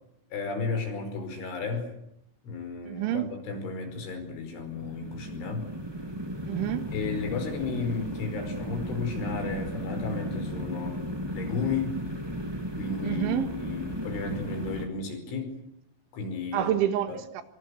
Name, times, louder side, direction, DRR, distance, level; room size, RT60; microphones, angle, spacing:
voice 1, 0.3-1.9 2.4-5.7 6.9-11.0 11.3-12.0 12.7-15.5 16.1-16.7 17.1-17.2, left 4 dB, 70° left, 6 dB, 7.6 m, -33 dB
voice 2, 2.9-3.3 6.4-6.9 13.0-13.5 16.5-17.4, right 11 dB, 75° right, 10 dB, 3.9 m, -28 dB
sound 1, 4.3-14.9, equal, 10° right, 1.6 m, -35 dB
26.0 x 24.5 x 8.3 m, 0.76 s
omnidirectional pair, 5.7 m